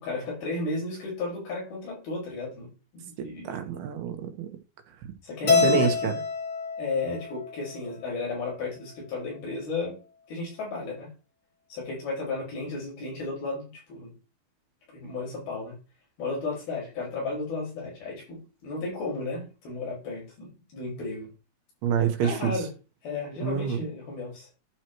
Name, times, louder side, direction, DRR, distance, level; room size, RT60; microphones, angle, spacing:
voice 1, 0.0-2.7 2.9-3.6 5.2-6.1 6.8-9.9 10.3-11.1 11.7-14.1 14.9-15.8 16.2-21.3 22.2-22.7 23.0-24.5, left 3 dB, 75° left, 7.2 m, -33 dB
voice 2, 3.2-4.5 5.4-6.1 21.8-22.6 23.4-23.9, right 7 dB, 90° right, 3.3 m, -27 dB
Keyboard (musical), 5.5-7.8, left 4 dB, 45° left, 1.4 m, -26 dB
11.5 x 4.6 x 4.6 m
omnidirectional pair, 4.3 m